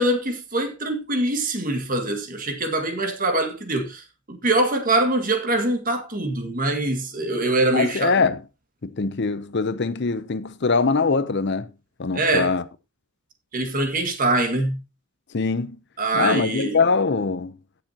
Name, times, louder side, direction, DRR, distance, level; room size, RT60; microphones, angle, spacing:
voice 1, 0.0-8.2 12.1-12.5 13.5-14.8 16.0-16.8, right 2 dB, 40° right, 1.9 m, -23 dB
voice 2, 7.7-8.4 8.8-11.7 12.0-12.6 15.3-15.8 16.1-17.5, left 4 dB, 50° left, 0.6 m, -22 dB
16.5 x 6.8 x 2.9 m
head